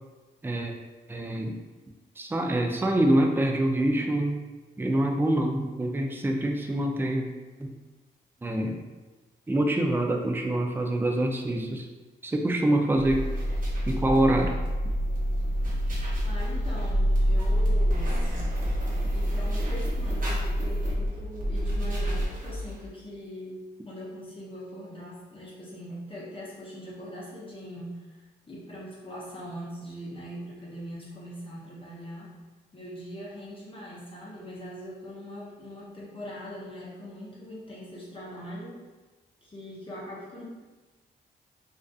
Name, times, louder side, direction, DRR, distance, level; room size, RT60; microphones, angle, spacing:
voice 1, 1.1-1.6 2.2-4.4 4.8-7.3 7.6-7.7 8.4-8.8 9.5-11.9 12.2-13.3 13.9-14.6, right 1 dB, 10° right, 2 dB, 0.3 m, -25 dB
sound 1, 12.9-22.9, equal, 45° right, 0.8 m, -27 dB
voice 2, 16.2-18.4 19.1-32.4 32.7-38.8 39.4-40.4, equal, 25° left, -7 dB, 0.7 m, -41 dB
2.4 x 2.4 x 2.3 m, 1.2 s
cardioid pair, 65°, 20 cm